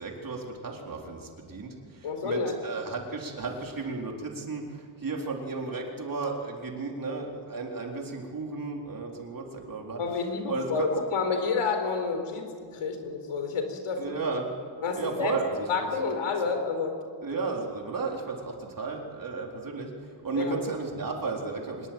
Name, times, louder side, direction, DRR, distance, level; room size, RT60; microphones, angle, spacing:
voice 1, 0.0-10.0 10.5-10.9 14.0-14.6 14.9-15.7 17.2-19.9 20.2-21.9, right 4 dB, 40° right, 0 dB, 4.1 m, -34 dB
voice 2, 2.0-2.5 10.0-12.5 12.7-14.1 14.8-15.4 15.7-16.9 20.4-20.5, left 5 dB, 85° left, 6 dB, 4.4 m, -29 dB
25.0 x 21.5 x 9.0 m, 2.1 s
wide cardioid pair, 145°, 49 cm